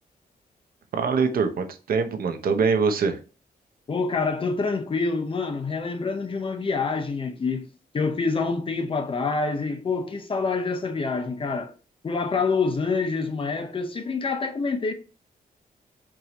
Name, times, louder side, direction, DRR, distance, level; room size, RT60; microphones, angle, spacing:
voice 1, 0.9-3.2, right 5 dB, 70° right, 0.7 m, -23 dB
voice 2, 3.9-7.7 7.9-11.7 12.0-14.9, left 4 dB, 35° left, 0.6 m, -26 dB
4.6 x 2.6 x 2.9 m
wide cardioid pair, 130°, 16 cm